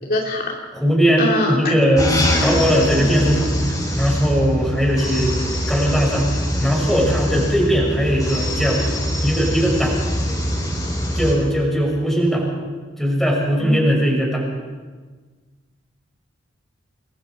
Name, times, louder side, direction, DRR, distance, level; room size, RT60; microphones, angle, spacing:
voice 1, 0.0-0.5 1.2-1.7 13.6-13.8, left 1 dB, 45° left, -1 dB, 2.8 m, -23 dB
voice 2, 0.7-5.4 5.7-6.3 6.6-8.9 9.2-10.0 11.1-12.5 13.0-14.5, equal, ahead, -2 dB, 6.2 m, -19 dB
sound 1, 2.0-11.4, equal, 20° left, 5.6 m, -23 dB
28.5 x 22.0 x 4.8 m, 1.4 s
head